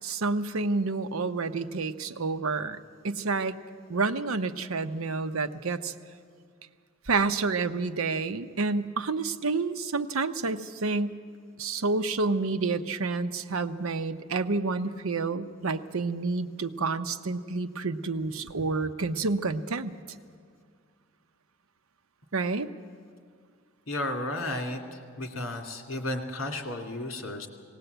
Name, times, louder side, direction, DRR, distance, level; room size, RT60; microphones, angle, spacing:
voice 1, 0.0-2.8 3.0-3.6 3.9-5.9 7.1-11.2 11.6-20.0 22.3-22.7, right 3 dB, 85° right, 10 dB, 0.8 m, -29 dB
voice 2, 23.9-27.5, left 1 dB, 70° left, 4 dB, 2.4 m, -33 dB
18.5 x 18.0 x 8.0 m, 2.2 s
head